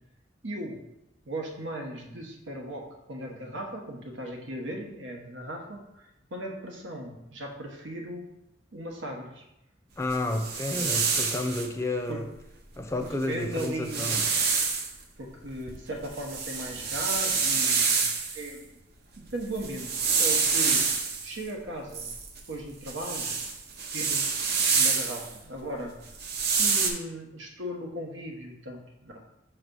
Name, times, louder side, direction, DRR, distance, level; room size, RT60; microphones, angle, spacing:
voice 1, 0.4-0.8 1.3-8.3 8.7-9.4 10.4-11.1 12.1-12.2 13.0-14.2 15.2-18.1 18.3-18.6 19.2-19.9 20.2-20.8 21.2-22.1 22.5-23.3 23.9-24.3 24.6-25.9 26.4-29.3, right 1 dB, 90° right, 1 dB, 1.1 m, -37 dB
voice 2, 10.0-12.2 12.8-14.2, left 2 dB, 15° left, 5 dB, 0.6 m, -31 dB
sound 1, 10.1-11.7 13.0-13.1 13.5-14.9 15.5-18.5 19.4-21.3 21.9-25.3 26.1-26.9, right 5 dB, 60° right, 0.8 m, -27 dB
5.8 x 3.1 x 5.4 m, 0.87 s
head